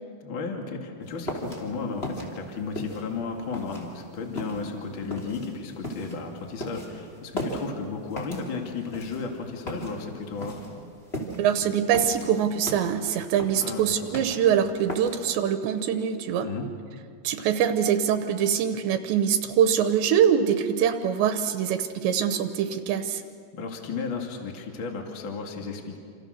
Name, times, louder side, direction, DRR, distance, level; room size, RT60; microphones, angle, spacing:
voice 1, 0.2-10.6 13.6-13.9 16.4-16.6 23.5-26.0, left 4 dB, 35° left, 2 dB, 2.4 m, -34 dB
sound 1, 1.1-15.4, equal, 15° left, 3.0 m, -37 dB
voice 2, 11.4-16.5 17.2-23.2, right 8 dB, 85° right, 8 dB, 3.2 m, -24 dB
28.0 x 27.5 x 6.5 m, 2.2 s
omnidirectional pair, 5.2 m